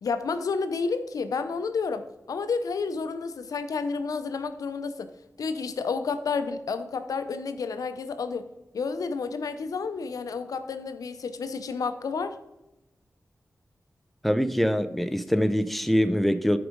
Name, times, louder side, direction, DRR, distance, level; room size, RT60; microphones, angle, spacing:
voice 1, 0.0-2.0 2.3-5.1 5.4-8.5 8.7-12.4, left 4 dB, 90° left, 10 dB, 0.6 m, -30 dB
voice 2, 14.2-16.6, equal, ahead, 11 dB, 0.6 m, -24 dB
9.9 x 4.8 x 5.2 m, 0.94 s
cardioid pair, 50°, 6 cm